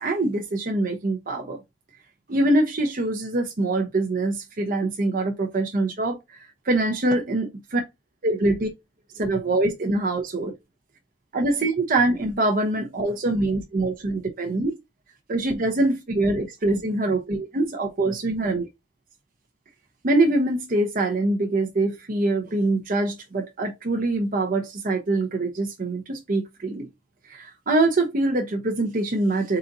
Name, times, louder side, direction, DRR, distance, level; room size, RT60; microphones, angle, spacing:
voice 1, 0.0-1.6 2.3-6.2 6.7-7.8 8.2-8.7 9.1-10.5 11.3-14.7 15.3-18.7 20.0-26.9 27.3-29.6, right 2 dB, 50° right, 0.8 m, -24 dB
3.9 x 2.6 x 4.0 m
head